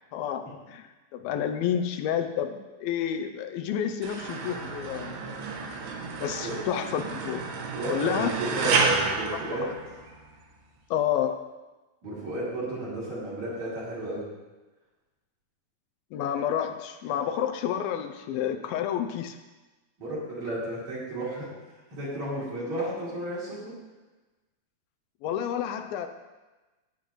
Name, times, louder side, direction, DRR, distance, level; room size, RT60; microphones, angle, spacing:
voice 1, 0.1-5.4 6.2-7.4 7.9-8.3 9.6-9.7 10.9-11.4 16.1-19.4 25.2-26.1, left 9 dB, 80° left, 8 dB, 2.3 m, -30 dB
sound 1, 4.0-10.3, right 4 dB, 90° right, 3.3 m, -30 dB
voice 2, 7.7-9.7 12.0-14.2 20.0-21.5 21.9-23.7, right 1 dB, 50° right, -6 dB, 5.0 m, -32 dB
17.0 x 8.7 x 3.1 m, 1.2 s
omnidirectional pair, 4.5 m